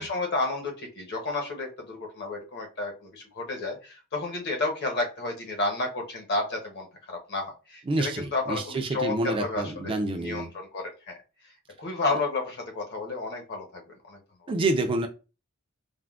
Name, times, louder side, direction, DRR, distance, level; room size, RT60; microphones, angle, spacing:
voice 1, 0.0-11.1 11.8-14.2, left 3 dB, 50° left, 2 dB, 0.8 m, -31 dB
voice 2, 7.9-10.5 14.5-15.1, right 2 dB, 25° right, 5 dB, 0.4 m, -28 dB
3.5 x 2.1 x 2.3 m, 0.31 s
head